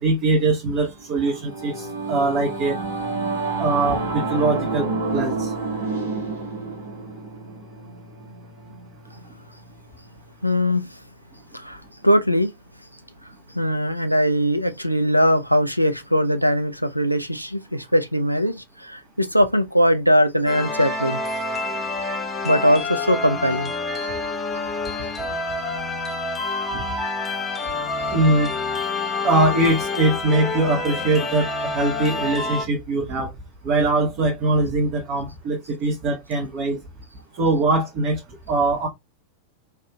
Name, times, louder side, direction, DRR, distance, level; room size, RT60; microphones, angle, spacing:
voice 1, 0.0-2.8 3.6-5.5 26.7-26.8 28.1-28.5 29.2-33.3 33.6-36.8 37.4-38.2 38.5-38.9, right 2 dB, 40° right, 0.9 m, -22 dB
Singing / Musical instrument, 0.9-10.6, right 3 dB, 70° right, 1.2 m, -30 dB
voice 2, 10.4-11.0 11.5-12.5 13.5-21.2 22.4-23.7, equal, 90° right, 0.4 m, -20 dB
sound 1, 20.5-32.6, left 3 dB, 20° left, 0.8 m, -27 dB
3.3 x 2.6 x 2.2 m
figure-of-eight pair, 90°, 0 cm